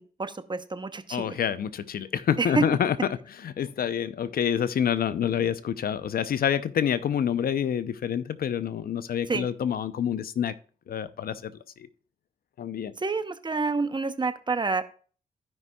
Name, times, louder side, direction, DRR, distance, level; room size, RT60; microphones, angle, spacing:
voice 1, 0.0-1.4 2.4-2.7 9.3-9.5 13.0-14.8, right 4 dB, 30° right, 0.8 m, -28 dB
voice 2, 1.1-3.0 3.4-10.5 10.9-11.5 11.8-11.9 12.6-12.9, left 9 dB, 75° left, 0.6 m, -27 dB
15.5 x 5.3 x 2.3 m
cardioid pair, 70°, 16 cm